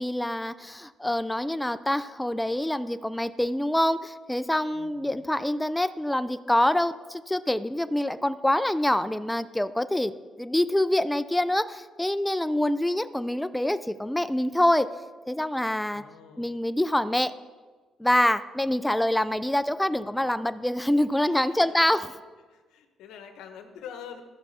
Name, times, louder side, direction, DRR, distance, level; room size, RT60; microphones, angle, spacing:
voice 1, 0.0-10.1 10.4-14.9 15.3-16.0 16.4-17.3 18.0-22.1, left 1 dB, 5° left, 12 dB, 0.4 m, -25 dB
voice 2, 4.7-5.1 15.9-16.7 21.2-22.1 22.5-24.2, left 8 dB, 90° left, 6 dB, 1.1 m, -46 dB
14.5 x 5.8 x 4.2 m, 1.3 s
cardioid pair, 90°, 0 cm